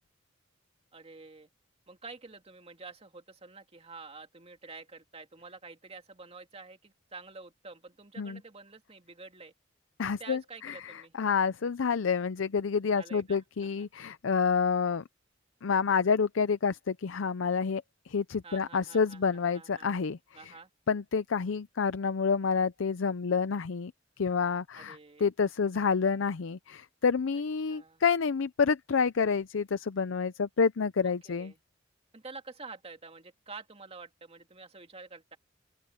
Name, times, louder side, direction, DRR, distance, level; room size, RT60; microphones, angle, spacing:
voice 1, 0.9-1.5 1.9-9.5 10.2-11.1 11.6-11.7 12.9-13.9 18.4-19.9 20.3-20.7 24.7-25.3 27.3-27.4 27.7-28.0 31.0-31.6 32.1-35.4, right 4 dB, 30° right, 2.4 m, -48 dB
voice 2, 10.0-15.0 15.6-20.5 20.9-23.9 24.2-31.5, left 5 dB, 85° left, 0.5 m, -28 dB
open air
head